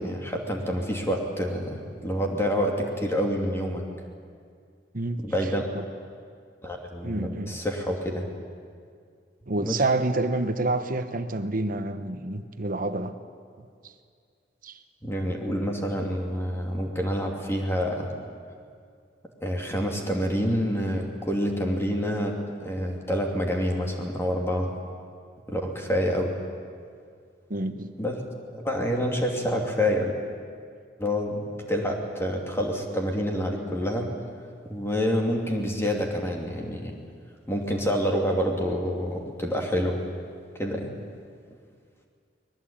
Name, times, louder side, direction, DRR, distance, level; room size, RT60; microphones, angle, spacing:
voice 1, 0.0-3.8 5.2-5.7 6.6-8.3 9.6-9.8 15.0-18.1 19.4-24.7 25.5-26.3 28.0-28.2 28.5-30.1 31.0-34.1 34.6-37.0 37.5-40.0 40.5-40.9, equal, 15° left, 1 dB, 2.7 m, -27 dB
voice 2, 4.9-5.2 5.7-5.8 7.0-7.6 9.5-13.1 14.6-14.8 27.5-27.9, right 2 dB, 50° right, 9 dB, 1.2 m, -28 dB
24.5 x 19.5 x 8.8 m, 2.2 s
head